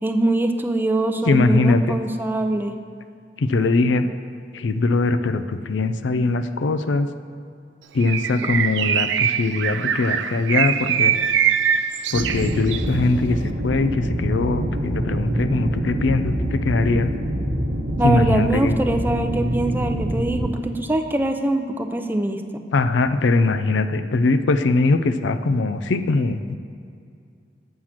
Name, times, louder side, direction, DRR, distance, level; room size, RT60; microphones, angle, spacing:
voice 1, 0.0-2.7 18.0-22.4, right 1 dB, 10° right, 6 dB, 0.5 m, -23 dB
voice 2, 1.3-2.0 3.4-4.1 4.5-7.1 7.9-11.2 12.1-17.1 18.0-18.8 22.7-26.6, left 3 dB, 85° left, 11 dB, 0.5 m, -21 dB
Bird, 8.0-12.9, right 8 dB, 75° right, 0.4 m, -22 dB
sound 1, 12.1-20.5, right 1 dB, 50° right, 0.9 m, -25 dB
7.5 x 6.3 x 5.8 m, 2.4 s
head